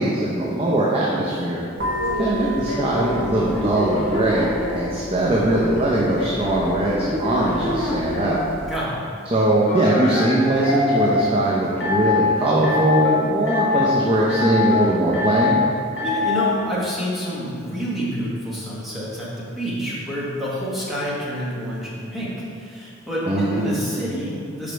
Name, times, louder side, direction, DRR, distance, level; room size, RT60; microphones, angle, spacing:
voice 1, 0.0-1.7 2.2-8.4 9.3-15.6 23.3-23.8, right 1 dB, 30° right, -5 dB, 0.6 m, -21 dB
sound 1, 1.8-8.8, left 1 dB, 70° right, 1.2 m, -33 dB
sound 2, 2.0-4.9 5.5-8.4 9.7-11.3 11.8-12.3 12.6-13.2 13.5-13.9 14.3-14.8 15.1-15.6 16.0-16.5, left 3 dB, 80° left, 1.4 m, -24 dB
voice 2, 8.7-9.0 16.0-24.7, equal, ahead, -8 dB, 1.3 m, -28 dB
5.1 x 5.0 x 4.4 m, 2.4 s
head